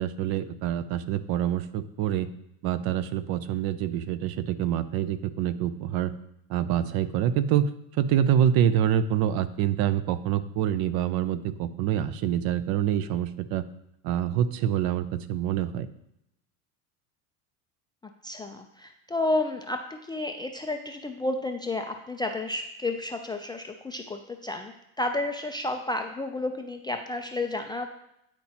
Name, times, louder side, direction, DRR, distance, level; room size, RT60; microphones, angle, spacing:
voice 1, 0.0-2.3 2.6-6.1 6.5-13.6 14.0-15.9, right 10 dB, 55° right, 13 dB, 0.6 m, -26 dB
voice 2, 18.2-24.7 25.0-27.9, left 2 dB, 10° left, 3 dB, 0.3 m, -31 dB
10.0 x 4.3 x 2.9 m, 0.81 s
hypercardioid pair, 80°, 45 cm